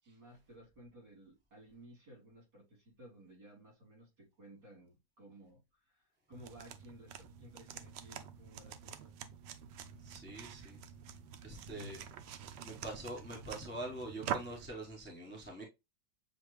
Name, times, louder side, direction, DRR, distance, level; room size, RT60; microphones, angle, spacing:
voice 1, 0.0-9.1 11.7-12.0, equal, 55° right, 3.8 m, -56 dB
sound 1, 6.3-14.7, right 9 dB, 70° right, 1.1 m, -46 dB
voice 2, 10.0-10.8 11.4-12.0 12.6-15.6, right 1 dB, 10° left, 0.8 m, -44 dB
7.0 x 2.4 x 3.1 m
omnidirectional pair, 2.1 m